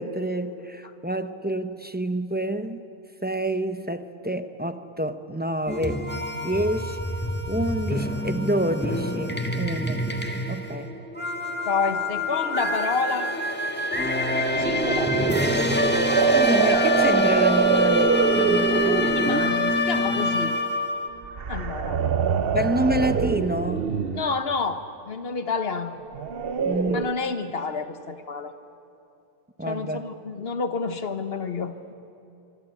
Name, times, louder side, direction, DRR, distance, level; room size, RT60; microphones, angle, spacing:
voice 1, 0.0-2.8 3.2-6.0 6.3-7.0 7.5-10.0 10.5-10.9 16.3-19.3 22.5-23.9 26.6-27.1 29.6-30.0, right 1 dB, 10° right, 9 dB, 0.8 m, -28 dB
sound 1, 5.7-21.1, left 1 dB, 10° left, 1.7 m, -26 dB
voice 2, 11.6-13.3 14.6-15.4 18.8-20.5 21.5-22.0 24.1-26.0 26.9-28.5 29.6-31.9, left 4 dB, 70° left, 9 dB, 1.4 m, -29 dB
sound 2, 14.5-19.5 21.2-24.4 26.1-27.1, right 6 dB, 65° right, 1.1 m, -24 dB
24.5 x 24.0 x 8.6 m, 2.7 s
omnidirectional pair, 1.1 m